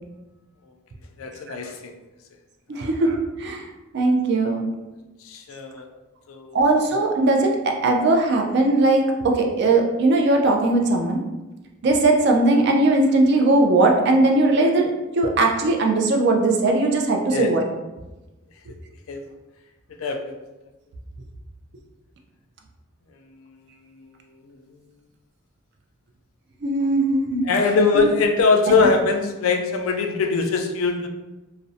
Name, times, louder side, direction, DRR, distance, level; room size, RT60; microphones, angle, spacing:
voice 1, 1.2-1.9 2.7-2.9 5.2-5.9 6.3-6.6 17.3-17.5 19.1-19.2 20.0-20.4 24.5-24.6 27.4-31.1, left 4 dB, 80° left, 4 dB, 0.3 m, -22 dB
voice 2, 2.7-3.7 3.9-4.7 6.5-11.2 11.8-17.6 26.6-27.5 27.9-28.0 28.7-28.9, right 2 dB, 55° right, 2 dB, 0.4 m, -19 dB
2.5 x 2.0 x 2.6 m, 1.1 s
head